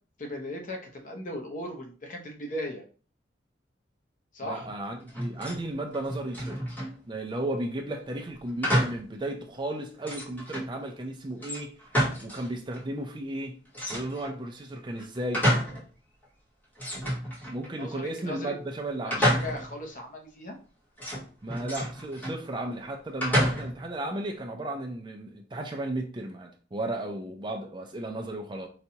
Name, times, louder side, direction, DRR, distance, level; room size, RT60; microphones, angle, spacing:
voice 1, 0.2-2.8 4.3-4.7 17.7-18.5 19.0-20.6, left 1 dB, 45° left, 0.8 m, -37 dB
voice 2, 4.4-6.6 7.1-11.8 12.2-13.6 13.9-15.5 17.5-19.3 21.4-28.7, right 1 dB, 25° right, 0.4 m, -34 dB
sound 1, 5.1-5.6 5.9-7.0 8.6-9.1 9.5-9.6 10.0-10.7 11.4-12.5 12.7-12.8 13.7-14.4 14.9-15.9 16.2-16.3 16.8-17.8 19.1-19.8 21.0-22.4 23.2-23.9, equal, 10° left, 1.0 m, -29 dB
4.1 x 2.3 x 2.8 m
head